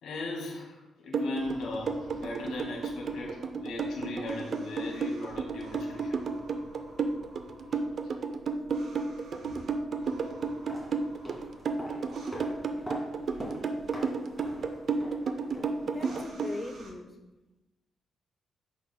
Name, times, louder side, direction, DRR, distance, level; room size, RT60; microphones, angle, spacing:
voice 1, 0.0-6.2, left 2 dB, 90° left, -1 dB, 1.9 m, -38 dB
sound 1, 1.1-16.5, right 5 dB, 55° right, 0.5 m, -32 dB
sound 2, 1.4-16.9, right 1 dB, 75° right, 1.6 m, -53 dB
sound 3, 10.5-16.5 16.7-16.8, equal, 5° left, 2.2 m, -44 dB
voice 2, 15.8-17.1, left 2 dB, 20° left, 4 dB, 0.6 m, -40 dB
10.5 x 5.0 x 2.2 m, 1.1 s
cardioid pair, 115°, 0 cm